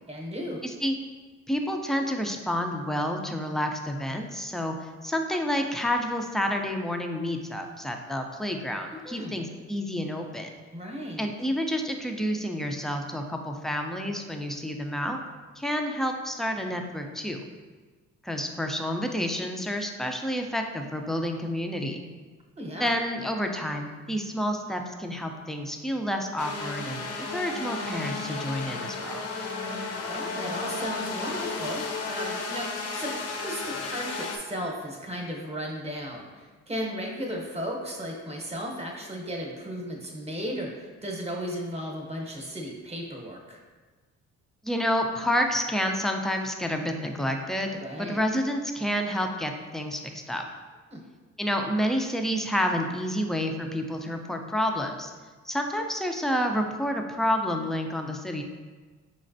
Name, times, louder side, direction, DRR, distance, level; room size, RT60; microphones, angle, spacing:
voice 1, 0.1-0.6 9.0-9.4 10.7-11.3 22.6-22.9 30.1-43.6 47.8-48.2 50.9-51.0, equal, 20° right, 0 dB, 0.9 m, -35 dB
voice 2, 0.6-0.9 1.5-10.5 11.2-15.2 15.6-17.4 18.2-22.0 22.8-29.3 44.6-50.4 51.4-55.1 55.4-58.4, equal, ahead, 3 dB, 0.4 m, -29 dB
sound 1, 26.4-34.4, left 4 dB, 55° left, 0.6 m, -33 dB
5.0 x 3.2 x 2.6 m, 1.4 s
cardioid pair, 90°, 30 cm